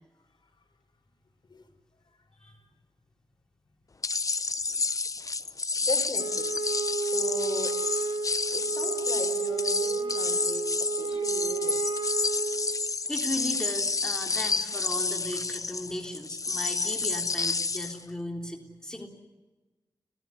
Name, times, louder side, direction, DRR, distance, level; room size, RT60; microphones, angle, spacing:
sound 1, 4.0-18.0, left 4 dB, 40° left, 0.9 m, -30 dB
voice 1, 5.8-6.5 6.9-7.7 8.5-10.7 11.0-11.9, left 3 dB, 55° left, 4 dB, 5.3 m, -38 dB
Wind instrument woodwind instrument, 6.2-13.0, right 5 dB, 70° right, 1.1 m, -32 dB
voice 2, 13.1-19.1, left 1 dB, 10° left, 2 dB, 3.6 m, -36 dB
30.0 x 16.0 x 9.5 m, 1.2 s
wide cardioid pair, 90°, 9 cm